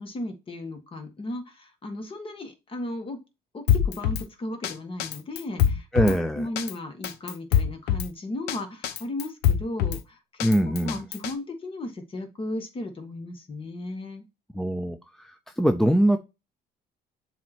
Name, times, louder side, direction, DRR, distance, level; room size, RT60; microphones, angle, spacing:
voice 1, 0.0-3.2 3.5-10.4 10.8-14.3, left 1 dB, 30° left, 5 dB, 1.6 m, -35 dB
Drum kit, 3.7-4.2 4.6-4.7 5.0-6.2 6.6-6.7 7.0-8.1 8.5-8.6 8.8-10.0 10.4-11.3, left 10 dB, 85° left, 0.7 m, -24 dB
voice 2, 5.9-6.5 10.4-11.0 14.5-16.2, equal, ahead, 7 dB, 0.4 m, -23 dB
7.4 x 2.9 x 4.3 m, 0.26 s
cardioid pair, 110°, 17 cm